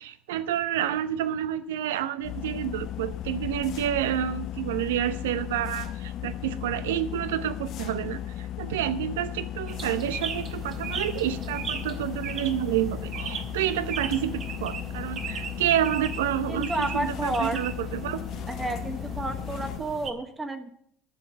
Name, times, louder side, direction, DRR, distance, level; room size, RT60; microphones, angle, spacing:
voice 1, 0.0-18.2, right 11 dB, 80° right, 14 dB, 0.7 m, -29 dB
sound 1, 2.2-19.8, left 12 dB, 55° left, 0.5 m, -36 dB
sound 2, 9.7-20.1, right 5 dB, 50° right, 1.7 m, -38 dB
voice 2, 16.5-17.6 18.5-20.7, right 2 dB, 20° right, 5 dB, 1.6 m, -31 dB
11.5 x 7.2 x 7.8 m, 0.66 s
hypercardioid pair, 70°, 0 cm